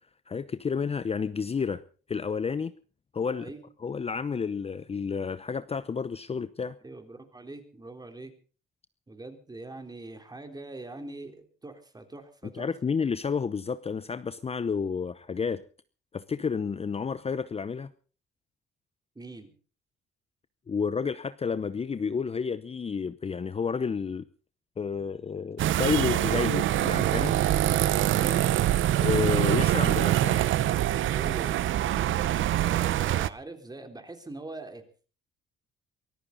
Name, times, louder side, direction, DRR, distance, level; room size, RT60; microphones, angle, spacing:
voice 1, 0.3-1.8 2.1-2.7 3.1-3.5 3.8-6.8 12.5-15.6 16.1-17.9 20.7-24.2 24.8-27.4 29.0-30.4, left 6 dB, 30° left, 14 dB, 0.7 m, -30 dB
voice 2, 6.8-8.3 9.1-12.7 19.2-19.5 28.1-28.6 31.1-31.7 32.6-34.8, right 2 dB, 20° right, 6 dB, 3.7 m, -42 dB
sound 1, 25.6-33.3, right 13 dB, 70° right, 0.8 m, -24 dB
23.5 x 14.5 x 4.0 m, 0.38 s
cardioid pair, 90°, 21 cm